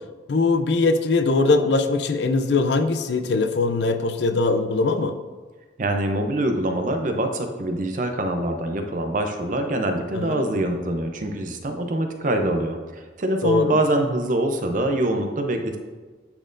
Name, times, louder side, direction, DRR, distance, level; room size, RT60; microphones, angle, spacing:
voice 1, 0.3-5.1 10.1-10.4 13.4-13.8, left 3 dB, 65° left, 9 dB, 0.4 m, -21 dB
voice 2, 5.8-15.8, right 1 dB, 45° right, 5 dB, 0.6 m, -24 dB
9.7 x 4.3 x 2.6 m, 1.4 s
head